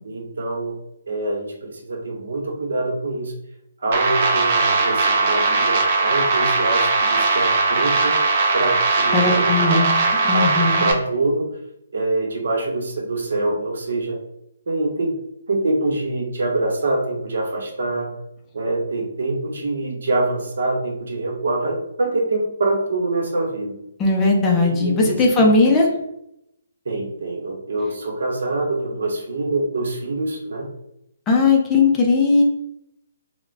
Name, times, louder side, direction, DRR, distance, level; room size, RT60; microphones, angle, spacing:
voice 1, 0.0-0.8 1.1-3.3 3.8-8.2 8.5-9.8 10.3-11.5 11.9-14.2 14.7-15.1 15.5-18.1 18.5-23.7 24.5-25.5 26.8-30.7, right 2 dB, 70° right, 2 dB, 0.7 m, -25 dB
sound 1, 3.9-10.9, right 3 dB, 35° right, 0.5 m, -19 dB
voice 2, 9.1-9.9 10.2-10.9 24.0-25.9 31.3-32.4, left 3 dB, 15° left, -1 dB, 0.5 m, -17 dB
2.3 x 2.1 x 3.3 m, 0.79 s
hypercardioid pair, 160°, 0 cm